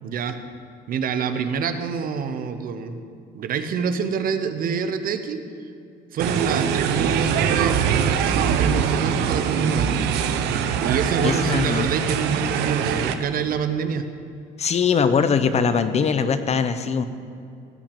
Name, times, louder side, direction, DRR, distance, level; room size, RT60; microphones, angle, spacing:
voice 1, 0.0-0.4 0.9-3.0 3.3-5.4 6.1-10.1 10.8-14.1, right 6 dB, 60° right, 9 dB, 1.1 m, -26 dB
sound 1, 6.2-13.1, right 7 dB, 90° right, 0.9 m, -23 dB
voice 2, 11.2-11.9 14.6-17.1, left 6 dB, 40° left, 11 dB, 0.8 m, -21 dB
16.5 x 5.9 x 8.9 m, 2.5 s
cardioid pair, 110°, 17 cm